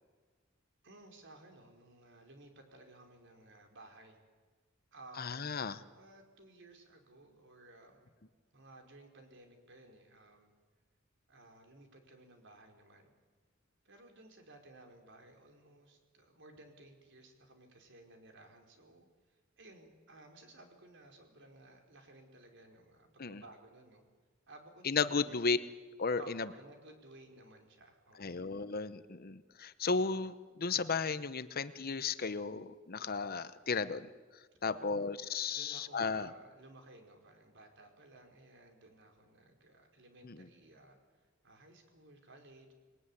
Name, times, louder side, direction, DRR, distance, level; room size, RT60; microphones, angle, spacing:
voice 1, 0.8-4.2 4.9-5.5 5.9-8.2 8.5-10.5 11.3-13.1 13.8-19.1 19.6-24.0 24.5-25.4 26.2-28.4 34.6-35.0 35.5-41.0 41.4-42.7, right 2 dB, 60° right, 4 dB, 4.7 m, -57 dB
voice 2, 5.2-5.8 23.2-23.4 24.8-25.6 26.0-26.5 28.2-34.1 34.6-36.3 40.2-40.5, left 4 dB, 50° left, 13 dB, 0.9 m, -34 dB
28.0 x 21.0 x 9.9 m, 1.4 s
head